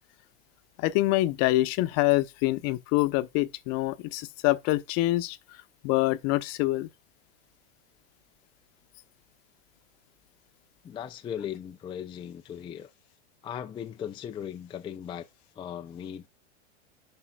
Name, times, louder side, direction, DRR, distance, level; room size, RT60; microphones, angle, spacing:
voice 1, 0.8-5.4 5.8-6.9, left 18 dB, 45° left, 0.8 m, -25 dB
voice 2, 10.8-12.9 13.4-15.3 15.5-16.3, left 9 dB, 15° left, 0.4 m, -38 dB
11.0 x 5.6 x 2.3 m
supercardioid pair, 130°, 35 cm